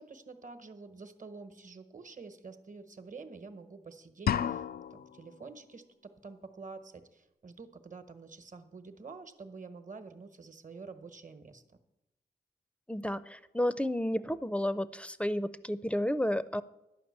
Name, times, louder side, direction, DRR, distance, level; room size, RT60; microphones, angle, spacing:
voice 1, 0.0-4.6 4.9-11.6, right 4 dB, 50° right, 9 dB, 1.1 m, -48 dB
sound 1, 4.3-5.2, left 9 dB, 65° left, 0.4 m, -31 dB
voice 2, 12.9-16.6, equal, 5° left, 15 dB, 0.5 m, -31 dB
11.0 x 5.8 x 8.6 m, 0.93 s
cardioid pair, 65°, 17 cm